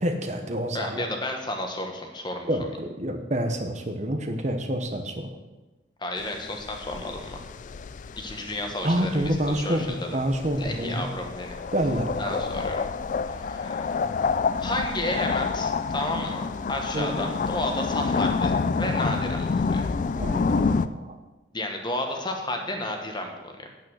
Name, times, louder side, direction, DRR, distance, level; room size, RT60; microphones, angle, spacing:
voice 1, 0.0-1.1 2.5-5.3 8.8-11.0 11.7-12.4 16.9-17.3 20.1-21.2, right 1 dB, 35° right, 5 dB, 0.9 m, -28 dB
voice 2, 0.7-2.5 6.0-7.4 8.2-10.0 10.6-11.5 12.2-12.9 13.3-14.0 14.6-19.9 21.5-23.7, left 1 dB, 25° left, 3 dB, 1.3 m, -32 dB
sound 1, 6.2-20.9, left 4 dB, 40° left, 0.3 m, -28 dB
8.9 x 8.8 x 6.4 m, 1.1 s
head